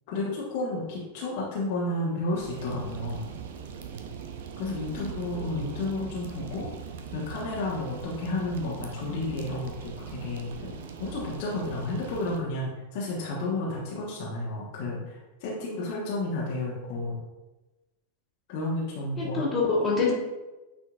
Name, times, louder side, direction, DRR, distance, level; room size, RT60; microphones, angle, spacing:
voice 1, 0.1-3.3 4.6-6.7 7.1-17.2 18.5-19.5, left 2 dB, 50° left, -5 dB, 1.3 m, -32 dB
sound 1, 2.3-12.4, right 7 dB, 55° right, 0.6 m, -40 dB
voice 2, 19.2-20.1, left 4 dB, 20° left, -4 dB, 1.8 m, -26 dB
8.9 x 4.4 x 2.4 m, 1.1 s
figure-of-eight pair, 90°, 0 cm